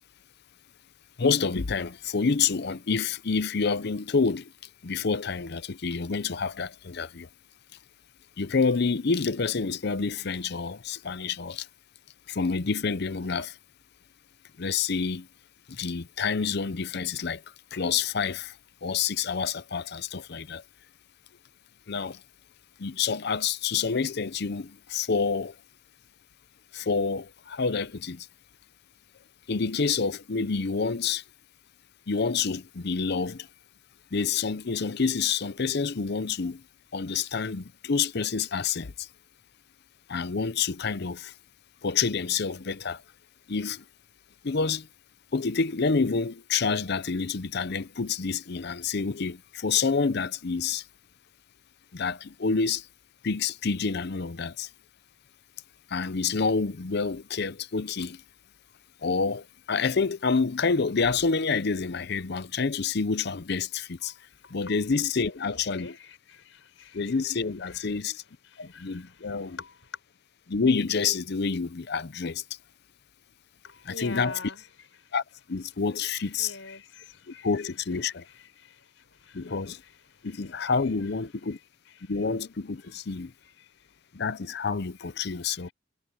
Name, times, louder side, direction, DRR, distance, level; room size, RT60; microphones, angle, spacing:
voice 1, 1.2-4.5 4.8-7.3 8.4-11.7 12.3-13.6 14.6-15.3 15.7-17.4 17.7-18.6 18.8-20.6 21.9-22.2 22.8-25.5 26.7-28.3 29.5-31.2 32.1-33.5 34.1-36.6 36.9-39.1 40.1-41.3 41.8-43.0 43.5-43.8 44.4-44.9 45.3-50.8 51.9-52.9 53.2-54.7 55.9-58.2 59.0-64.1 64.5-65.9 66.9-68.2 68.6-69.6 70.5-72.4 73.9-74.4 75.1-75.2 75.5-76.6 77.3-78.2 79.3-79.8 80.2-81.6 82.1-83.3 84.1-85.7, left 5 dB, 55° left, 0.6 m, -28 dB
voice 2, 64.0-64.8 65.5-67.2 67.6-67.9 68.4-70.0 73.6-75.1 76.2-77.7 78.0-80.9 81.5-81.6 81.9-82.1 82.8-83.9 85.0-85.7, left 4 dB, 70° left, 5.6 m, -47 dB
head